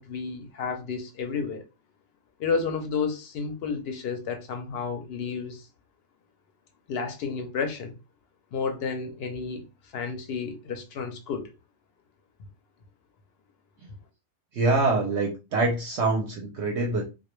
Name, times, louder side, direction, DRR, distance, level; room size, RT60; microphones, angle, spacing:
voice 1, 0.0-1.6 2.4-5.7 6.9-8.0 8.5-11.5, left 5 dB, 65° left, 0.6 m, -31 dB
voice 2, 14.5-17.0, right 3 dB, 65° right, 0.8 m, -25 dB
2.3 x 2.1 x 3.0 m
omnidirectional pair, 1.3 m